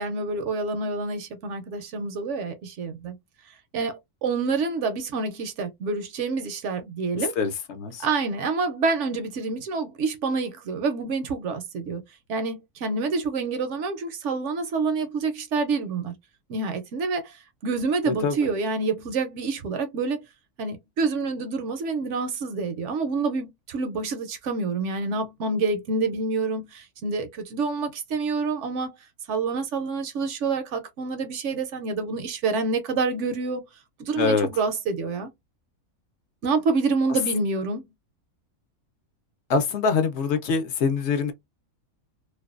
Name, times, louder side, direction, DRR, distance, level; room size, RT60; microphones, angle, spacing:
voice 1, 0.0-3.2 3.7-7.3 8.0-12.0 12.3-16.1 16.5-20.2 20.6-28.9 29.3-33.6 34.0-35.3 36.4-37.8, right 4 dB, 65° right, 0.8 m, -27 dB
voice 2, 7.1-8.1 18.1-18.5 34.2-34.5 39.5-41.3, left 5 dB, 65° left, 0.8 m, -24 dB
2.5 x 2.1 x 2.3 m
omnidirectional pair, 1.5 m